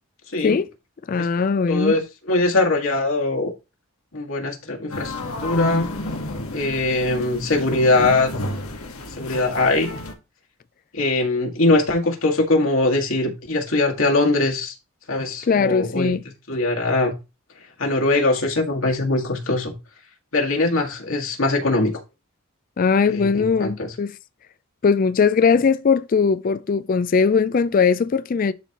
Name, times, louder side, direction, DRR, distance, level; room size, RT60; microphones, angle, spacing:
voice 1, 1.1-1.9 15.5-16.2 22.8-24.1 24.8-28.5, left 5 dB, 40° left, 0.3 m, -19 dB
voice 2, 1.7-3.5 4.1-5.9 6.5-8.3 9.2-9.9 10.9-14.7 15.1-16.1 16.5-17.1 17.8-19.7 20.3-22.0 23.1-23.9, left 2 dB, 70° left, 1.8 m, -21 dB
sound 1, 4.9-10.1, left 1 dB, 85° left, 1.5 m, -30 dB
11.5 x 4.2 x 2.9 m
head